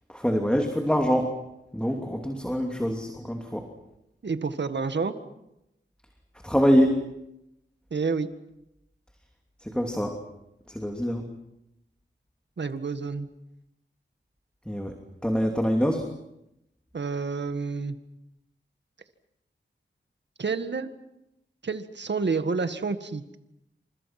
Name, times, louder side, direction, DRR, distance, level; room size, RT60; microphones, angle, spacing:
voice 1, 0.1-1.4 1.7-3.7 6.4-7.0 9.6-10.2 10.7-11.2 14.7-14.9 15.2-16.1, equal, 5° left, 3 dB, 2.8 m, -25 dB
voice 2, 4.2-5.2 7.9-8.3 12.6-13.3 16.9-18.0 20.4-20.9 21.6-23.4, right 4 dB, 65° right, 10 dB, 1.8 m, -29 dB
29.5 x 27.0 x 6.0 m, 0.86 s
wide cardioid pair, 90°, 20 cm